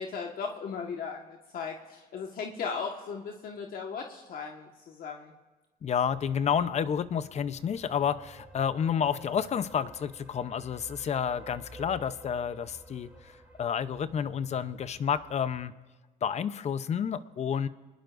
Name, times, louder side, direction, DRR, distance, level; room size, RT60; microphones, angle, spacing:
voice 1, 0.0-5.3, left 5 dB, 60° left, 1 dB, 1.6 m, -37 dB
voice 2, 5.8-13.3 13.6-15.7 16.2-17.7, left 7 dB, 40° left, 13 dB, 0.7 m, -30 dB
sound 1, 6.1-15.7, right 1 dB, 10° right, 2.9 m, -52 dB
25.0 x 20.5 x 2.6 m, 1.2 s
cardioid pair, 110°, 17 cm